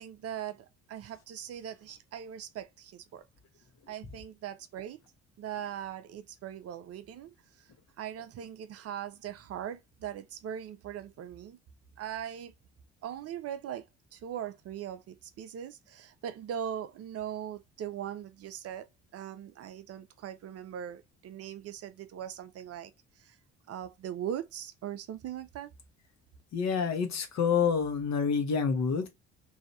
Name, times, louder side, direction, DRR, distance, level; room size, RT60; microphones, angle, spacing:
voice 1, 0.0-3.2 3.9-5.0 5.4-7.7 8.0-11.6 12.0-12.5 13.0-13.9 14.1-18.9 19.1-22.9 23.2-23.4 23.7-25.7, right 10 dB, 45° right, 0.5 m, -40 dB
voice 2, 26.5-29.1, left 6 dB, 50° left, 1.1 m, -28 dB
3.1 x 2.7 x 2.6 m
hypercardioid pair, 50°, 34 cm